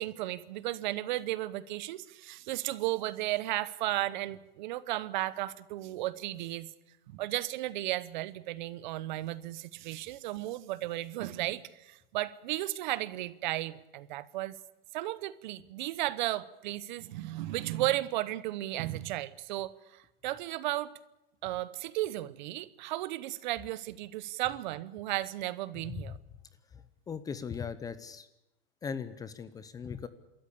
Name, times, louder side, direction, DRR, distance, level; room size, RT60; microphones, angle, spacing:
voice 1, 0.0-6.7 7.1-14.6 14.9-20.9 21.4-26.2, right 16 dB, 50° right, 17 dB, 1.0 m, -34 dB
voice 2, 26.7-28.3 28.8-30.1, left 6 dB, 10° left, 13 dB, 0.7 m, -39 dB
27.0 x 13.5 x 8.4 m, 0.94 s
hypercardioid pair, 145°, 30 cm